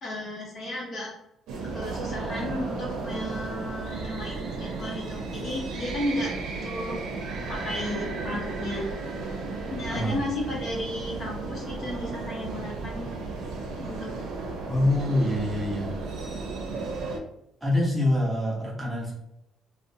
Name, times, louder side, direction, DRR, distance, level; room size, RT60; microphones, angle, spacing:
voice 1, 0.0-1.1 1.7-6.3 6.6-7.0 7.5-8.9 9.7-13.1 13.8-14.1, left 1 dB, 50° left, -3 dB, 0.9 m, -33 dB
sound 1, 1.5-17.2, right 3 dB, 85° right, 0.5 m, -34 dB
voice 2, 9.9-10.2 14.7-15.9 17.6-19.1, left 1 dB, 10° right, -5 dB, 0.7 m, -25 dB
2.4 x 2.1 x 2.7 m, 0.80 s
cardioid pair, 140°, 0 cm